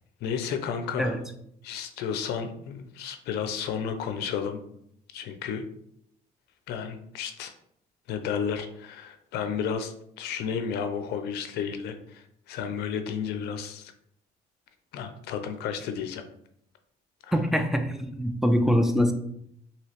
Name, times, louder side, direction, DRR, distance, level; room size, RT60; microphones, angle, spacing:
voice 1, 0.2-1.1 1.6-4.6 5.1-5.6 6.7-7.5 8.1-13.9 14.9-16.2 17.2-17.4, left 7 dB, 75° left, 8 dB, 0.4 m, -32 dB
voice 2, 17.3-19.1, equal, ahead, 6 dB, 0.3 m, -24 dB
3.0 x 2.8 x 2.9 m, 0.71 s
cardioid pair, 110°, 17 cm